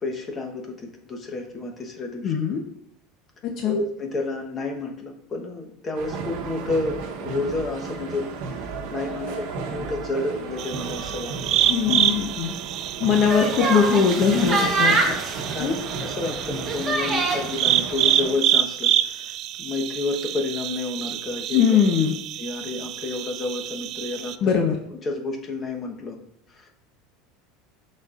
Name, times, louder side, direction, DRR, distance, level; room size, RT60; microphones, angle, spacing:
voice 1, 0.0-2.3 3.6-8.3 8.9-11.6 15.1-15.2 15.5-21.6 22.4-24.5 25.0-26.2 26.5-26.7, left 2 dB, 25° left, 2 dB, 1.0 m, -30 dB
voice 2, 2.2-2.6 3.6-3.8 11.6-12.5 13.0-15.2 15.6-15.8 21.5-22.1 24.4-24.7, left 7 dB, 45° left, 2 dB, 0.7 m, -21 dB
sound 1, 5.9-18.3, right 5 dB, 60° right, 0.9 m, -34 dB
sound 2, 10.6-24.4, right 11 dB, 45° right, 0.3 m, -27 dB
sound 3, 13.1-17.6, right 3 dB, 20° right, 1.1 m, -25 dB
11.5 x 4.2 x 2.4 m, 0.73 s
supercardioid pair, 145°, 0 cm